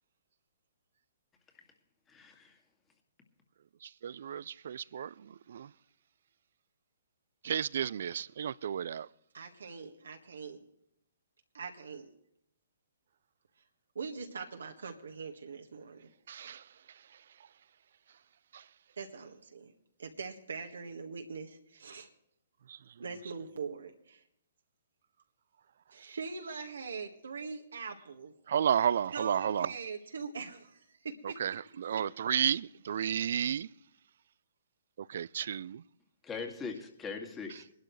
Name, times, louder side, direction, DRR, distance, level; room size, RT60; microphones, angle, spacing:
voice 1, 2.1-2.6 36.2-37.8, left 5 dB, 15° left, 2.3 m, -41 dB
voice 2, 3.8-5.7 7.4-9.1 16.3-17.2 18.5-18.7 22.7-22.9 28.5-29.7 31.2-33.7 35.0-35.8, right 8 dB, 60° right, 0.4 m, -33 dB
voice 3, 9.3-10.6 11.5-12.1 14.0-16.1 19.0-19.7 20.0-22.1 23.0-24.2 25.9-28.3 29.1-31.4 31.9-32.0, right 5 dB, 75° right, 1.7 m, -42 dB
22.5 x 12.0 x 3.3 m
hypercardioid pair, 130°, 0 cm